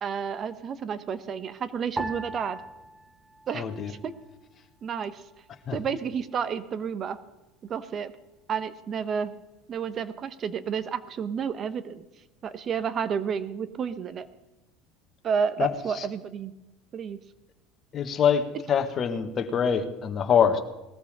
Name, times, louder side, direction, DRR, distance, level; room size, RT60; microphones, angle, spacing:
voice 1, 0.0-2.6 3.5-4.1 4.8-5.2 5.7-7.2 7.7-8.1 8.5-9.3 9.7-12.0 12.4-14.3 15.2-16.5 16.9-17.2, right 7 dB, 40° right, 13 dB, 1.2 m, -31 dB
sound 1, 2.0-4.5 4.7-5.7 6.3-6.7, right 2 dB, 20° right, 1.4 m, -39 dB
voice 2, 3.5-3.9 5.7-5.8 15.6-16.0 17.9-20.6, left 7 dB, 40° left, 6 dB, 1.7 m, -25 dB
19.5 x 14.0 x 3.7 m, 1.0 s
supercardioid pair, 90°, 0 cm